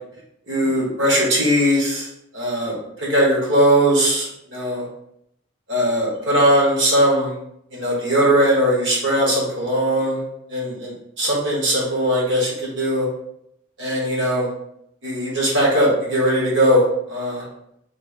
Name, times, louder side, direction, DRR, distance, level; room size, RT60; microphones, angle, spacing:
voice 1, 0.5-2.1 2.3-4.8 5.7-7.3 7.7-10.2 10.5-13.1 13.8-14.5 15.0-17.4, equal, 70° right, -4 dB, 1.2 m, -19 dB
3.3 x 3.2 x 2.4 m, 0.76 s
head